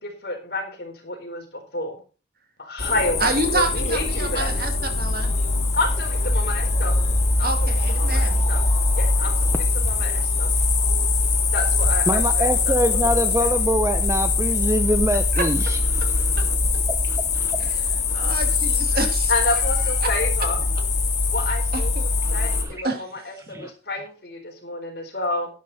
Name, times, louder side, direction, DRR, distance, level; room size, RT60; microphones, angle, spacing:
voice 1, 0.0-2.0 2.6-4.5 5.7-7.0 7.4-7.5 7.9-8.6 9.0-10.5 11.5-13.5 19.3-20.6 21.3-21.9 22.3-25.5, left 2 dB, 55° left, 3 dB, 4.2 m, -29 dB
sound 1, 2.8-22.6, left 3 dB, 35° left, 2.4 m, -22 dB
voice 2, 3.2-5.3 7.4-8.4 15.3-15.4 17.6-17.8 18.1-19.3 20.0-20.1 21.7-21.8 22.8-23.0, right 2 dB, 50° right, 5 dB, 2.3 m, -27 dB
voice 3, 12.1-16.2 16.9-17.6 22.3-22.8 23.5-23.7, right 1 dB, 15° right, 8 dB, 0.7 m, -25 dB
11.5 x 11.0 x 4.2 m, 0.36 s
head